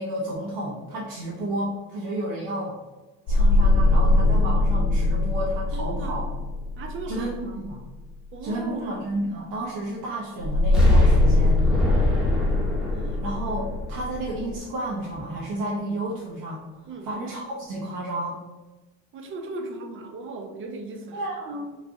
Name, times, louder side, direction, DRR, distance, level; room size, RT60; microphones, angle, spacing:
voice 1, 0.0-2.8 3.3-6.2 7.1-7.8 8.4-11.6 13.0-16.6 17.0-18.4 21.1-21.7, right 1 dB, 70° right, -4 dB, 0.7 m, -31 dB
sound 1, 3.3-7.7 10.4-14.5, left 2 dB, 55° left, 0.5 m, -21 dB
voice 2, 5.7-6.3 6.8-7.6 8.3-9.0 11.8-12.4 16.8-17.1 19.1-21.3, right 3 dB, 40° right, 4 dB, 0.5 m, -37 dB
Explosion, 10.7-14.7 15.1-15.2, equal, ahead, 0.7 m, -27 dB
3.2 x 2.5 x 3.5 m, 1.2 s
cardioid pair, 155°, 34 cm